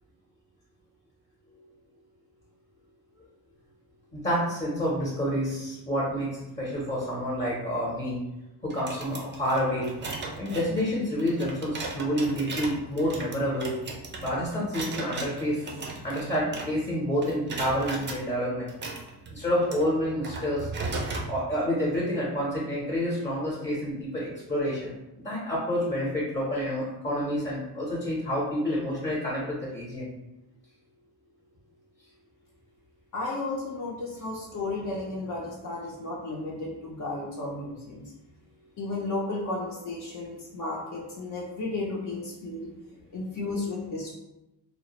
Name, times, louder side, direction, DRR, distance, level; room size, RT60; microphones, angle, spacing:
voice 1, 4.1-6.3 6.6-8.2 8.6-9.9 10.4-13.7 14.2-15.6 16.0-18.7 19.3-20.7 21.3-24.9 25.2-30.1, equal, 15° left, -6 dB, 0.7 m, -28 dB
sound 1, 8.7-17.0 17.2-18.2 18.7-21.3, right 3 dB, 30° right, 0.4 m, -37 dB
voice 2, 33.1-38.1 38.8-42.7 43.1-44.1, left 2 dB, 55° left, -3 dB, 0.6 m, -33 dB
2.2 x 2.0 x 2.8 m, 0.95 s
cardioid pair, 100°, 41 cm